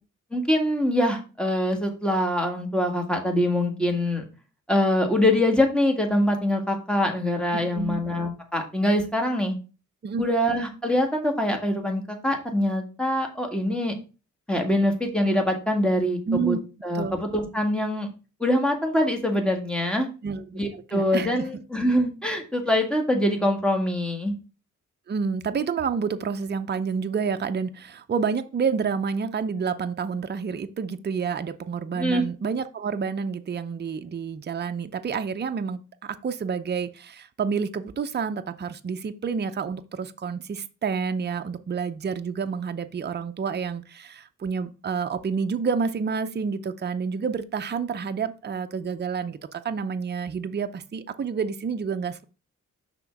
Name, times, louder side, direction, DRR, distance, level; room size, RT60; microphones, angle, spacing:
voice 1, 0.3-4.2 4.7-9.5 10.2-13.9 14.5-16.6 16.8-18.1 18.4-20.1 20.5-24.3 31.9-32.2, left 1 dB, 5° left, 3 dB, 1.8 m, -24 dB
voice 2, 7.5-8.0 10.0-10.3 16.3-16.6 16.9-17.2 20.2-21.3 25.1-52.3, right 6 dB, 35° right, 9 dB, 0.6 m, -29 dB
6.0 x 3.6 x 5.8 m, 0.33 s
cardioid pair, 80°, 31 cm